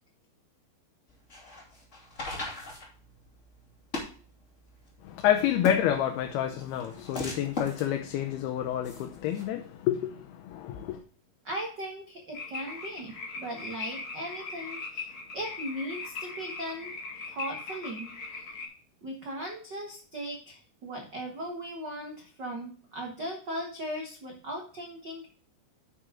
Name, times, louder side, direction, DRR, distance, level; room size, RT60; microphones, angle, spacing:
sound 1, 1.1-9.4, left 2 dB, 25° left, 2.1 m, -40 dB
voice 1, 5.0-11.0, left 10 dB, 90° left, 2.8 m, -28 dB
voice 2, 11.4-17.0 17.3-18.5 19.0-25.3, equal, 70° right, 1.0 m, -38 dB
sound 2, 12.3-18.7, left 4 dB, 40° left, 2.3 m, -40 dB
9.7 x 6.2 x 3.7 m
omnidirectional pair, 4.4 m